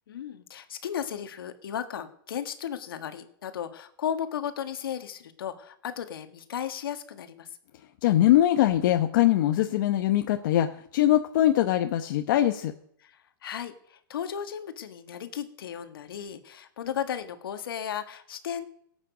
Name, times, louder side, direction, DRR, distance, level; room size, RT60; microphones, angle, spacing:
voice 1, 0.1-7.5 13.0-18.6, left 9 dB, 80° left, 8 dB, 1.7 m, -35 dB
voice 2, 8.0-12.7, left 13 dB, 60° left, 7 dB, 1.0 m, -22 dB
17.5 x 8.7 x 5.2 m, 0.68 s
hypercardioid pair, 130°, 12 cm